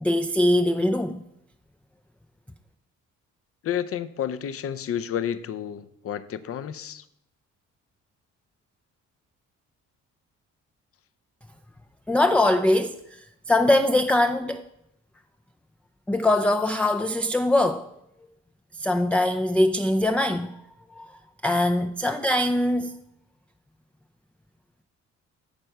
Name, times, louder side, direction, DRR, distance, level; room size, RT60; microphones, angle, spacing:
voice 1, 0.0-1.2 12.1-14.6 16.1-17.9 18.8-20.5 20.9-21.1 21.4-23.0, left 1 dB, 5° left, 0.3 m, -22 dB
voice 2, 3.6-7.0, left 9 dB, 50° left, 0.6 m, -30 dB
9.0 x 4.5 x 6.6 m
cardioid pair, 90°, 30 cm